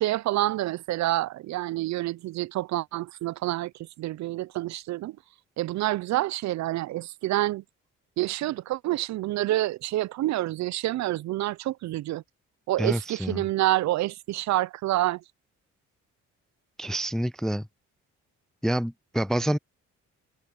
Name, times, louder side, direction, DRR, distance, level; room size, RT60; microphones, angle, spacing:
voice 1, 0.0-5.2 5.6-7.6 8.2-12.2 12.7-15.2, right 16 dB, 65° right, 0.5 m, -28 dB
voice 2, 12.8-13.4 16.8-17.7 18.6-19.6, right 1 dB, ahead, 0.3 m, -27 dB
cardioid pair, 90°, 30 cm